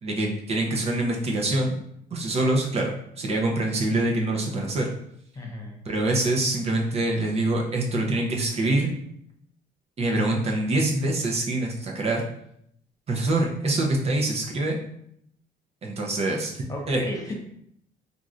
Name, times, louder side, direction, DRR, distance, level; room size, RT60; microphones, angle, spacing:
voice 1, 0.0-1.8 2.1-4.9 5.9-8.9 10.0-12.2 13.1-14.8 15.8-17.0, right 2 dB, 40° right, 0 dB, 0.5 m, -25 dB
voice 2, 5.3-5.8 16.7-17.3, left 1 dB, 20° left, 1 dB, 0.6 m, -34 dB
3.0 x 2.5 x 2.4 m, 0.71 s
cardioid pair, 110°, 17 cm